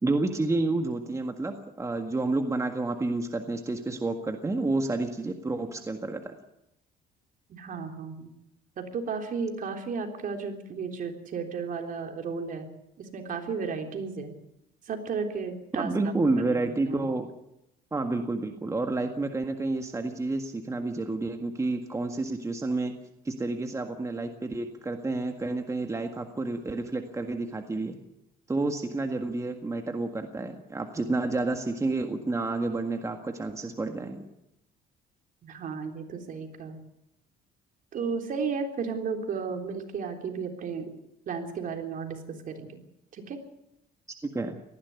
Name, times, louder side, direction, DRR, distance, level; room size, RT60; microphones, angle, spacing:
voice 1, 0.0-6.3 15.8-17.3 17.9-22.9 23.2-28.0 28.5-34.2 44.2-44.6, right 2 dB, 15° right, 5 dB, 1.7 m, -30 dB
voice 2, 7.5-8.3 8.8-12.7 13.0-14.3 14.9-15.9 16.5-16.6 16.9-17.0 35.4-36.8 37.9-40.9 41.3-42.8 43.3-43.4, right 5 dB, 55° right, 4 dB, 3.6 m, -33 dB
19.0 x 15.0 x 9.6 m, 0.84 s
cardioid pair, 110°, 17 cm